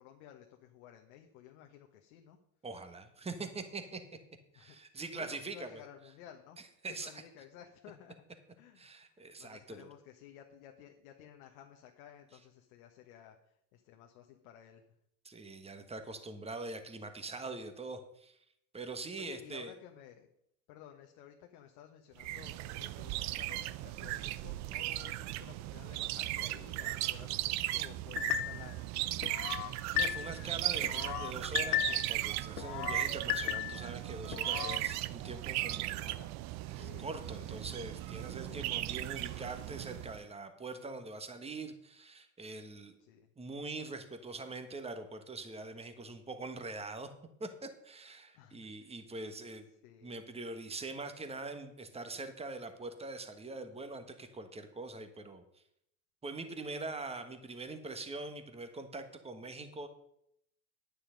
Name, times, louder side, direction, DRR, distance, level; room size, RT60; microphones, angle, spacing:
voice 1, 0.0-2.4 4.5-4.8 5.1-6.6 6.9-8.2 8.6-14.8 19.2-20.3 20.7-29.4 35.9-36.4 36.7-37.6 38.5-38.7 43.0-43.3 48.3-48.9 49.8-50.2, left 10 dB, 60° left, 3 dB, 1.3 m, -55 dB
voice 2, 2.6-4.0 4.5-5.8 6.8-7.2 8.8-9.9 15.2-18.4 18.7-19.7 29.9-36.0 36.7-43.0 43.4-47.1 47.4-49.7 50.0-55.6 56.2-59.9, right 3 dB, 15° right, 8 dB, 1.5 m, -43 dB
sound 1, 22.2-40.2, right 16 dB, 35° right, 0.5 m, -37 dB
sound 2, 28.2-28.7 29.2-30.5 30.8-32.2 32.6-33.9 34.3-34.8, left 14 dB, 80° left, 0.6 m, -35 dB
9.8 x 9.5 x 5.2 m, 0.75 s
hypercardioid pair, 95°, 47 cm